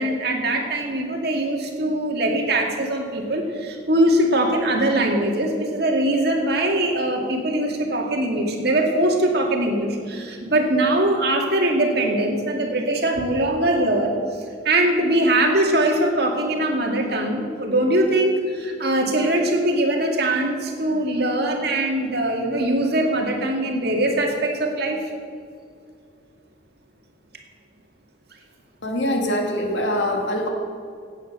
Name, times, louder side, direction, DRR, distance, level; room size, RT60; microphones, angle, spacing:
voice 1, 0.0-14.1 14.6-25.1, right 1 dB, 60° right, 1 dB, 2.2 m, -22 dB
voice 2, 28.8-30.5, left 1 dB, 75° left, 1 dB, 2.3 m, -23 dB
16.0 x 8.7 x 6.6 m, 2.3 s
head